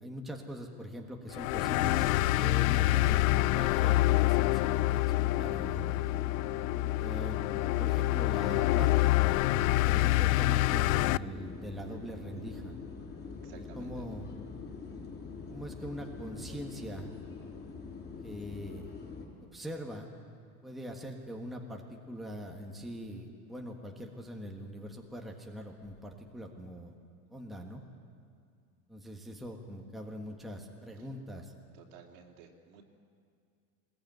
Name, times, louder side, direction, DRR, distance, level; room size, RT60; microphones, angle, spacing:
voice 1, 0.0-2.1 2.4-6.0 7.0-12.7 13.5-14.3 15.5-17.1 18.2-18.8 19.4-20.1 20.6-26.9 27.3-27.8 28.9-31.5, equal, ahead, 0 dB, 1.5 m, -42 dB
sound 1, 1.3-11.2, left 19 dB, 60° left, 0.5 m, -27 dB
sound 2, 1.5-19.3, left 4 dB, 20° left, 4.4 m, -44 dB
voice 2, 13.4-14.1 31.7-32.8, right 7 dB, 60° right, 2 dB, 3.2 m, -54 dB
21.0 x 20.5 x 9.3 m, 2.2 s
supercardioid pair, 145°, 47 cm